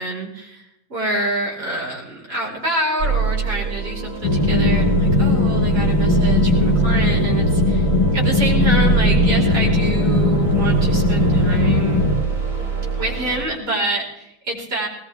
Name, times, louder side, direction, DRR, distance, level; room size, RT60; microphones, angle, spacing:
voice 1, 0.0-12.1 13.0-14.9, right 1 dB, 30° right, -4 dB, 5.1 m, -27 dB
sound 1, 3.0-13.4, right 5 dB, 55° right, 5.8 m, -24 dB
sound 2, 4.2-12.2, left 2 dB, 80° left, 2.6 m, -18 dB
20.5 x 19.5 x 3.5 m, 0.80 s
omnidirectional pair, 2.0 m